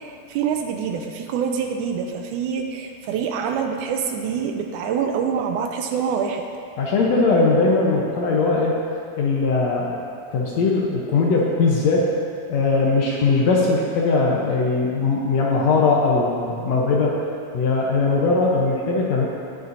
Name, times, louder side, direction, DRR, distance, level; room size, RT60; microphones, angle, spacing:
voice 1, 0.0-6.5, right 7 dB, 80° right, 4 dB, 1.9 m, -26 dB
voice 2, 6.8-8.8 9.2-10.0 10.3-12.1 12.5-17.2 17.5-19.3, left 3 dB, 65° left, -2 dB, 1.8 m, -20 dB
20.0 x 6.8 x 2.7 m, 2.4 s
omnidirectional pair, 3.8 m